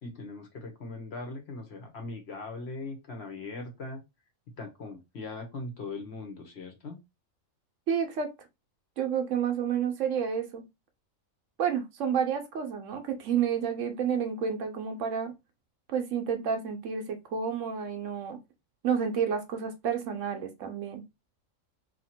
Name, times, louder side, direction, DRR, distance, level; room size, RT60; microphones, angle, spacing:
voice 1, 0.0-4.0 4.6-7.0, left 3 dB, 55° left, 1.1 m, -40 dB
voice 2, 7.9-8.3 9.0-10.6 11.6-15.3 15.9-18.4 18.8-21.0, right 7 dB, 70° right, 1.0 m, -30 dB
2.9 x 2.8 x 4.3 m
omnidirectional pair, 1.4 m